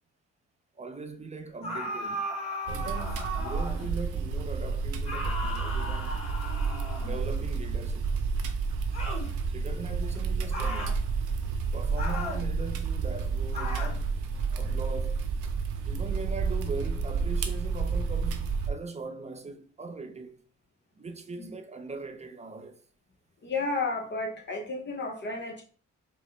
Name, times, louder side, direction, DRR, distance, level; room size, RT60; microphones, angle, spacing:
voice 1, 0.7-2.2 2.7-6.2 7.0-8.2 9.5-11.0 11.7-14.1 14.6-15.3 15.8-20.4 21.0-22.8, right 3 dB, 25° right, 0.5 m, -40 dB
sound 1, 1.6-3.9 5.0-7.3 8.9-9.3 10.5-11.0 12.0-12.5 13.5-14.0, left 1 dB, 20° left, 1.5 m, -36 dB
sound 2, 2.7-18.7, right 5 dB, 85° right, 0.6 m, -30 dB
voice 2, 23.4-25.6, left 3 dB, 35° left, 0.8 m, -32 dB
4.7 x 2.0 x 3.2 m
cardioid pair, 90°, 30 cm